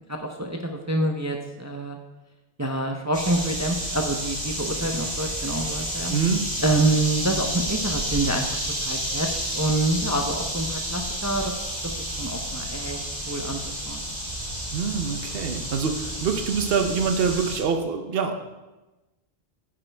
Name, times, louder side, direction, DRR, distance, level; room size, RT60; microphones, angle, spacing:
voice 1, 0.1-2.0 2.6-6.1 6.6-8.5 8.8-14.0, right 2 dB, 20° right, 3 dB, 0.5 m, -27 dB
sound 1, 3.1-17.6, equal, 35° right, 2.6 m, -30 dB
voice 2, 6.1-6.4 14.7-18.4, right 6 dB, 60° right, 6 dB, 1.0 m, -25 dB
9.1 x 8.6 x 3.4 m, 1.1 s
omnidirectional pair, 1.2 m